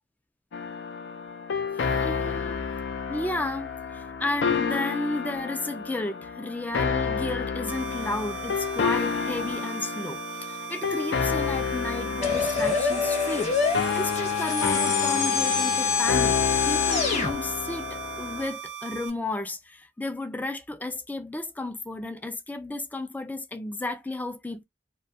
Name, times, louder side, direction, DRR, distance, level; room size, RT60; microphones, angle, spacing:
sound 1, 0.5-18.5, left 6 dB, 75° left, 0.4 m, -30 dB
voice 1, 2.0-2.7 3.1-13.6 13.9-16.4 16.7-24.6, left 2 dB, 10° left, 0.3 m, -33 dB
sound 2, 7.7-19.1, right 9 dB, 85° right, 0.6 m, -39 dB
sound 3, 12.2-17.3, left 6 dB, 40° left, 0.9 m, -25 dB
2.2 x 2.2 x 2.7 m
head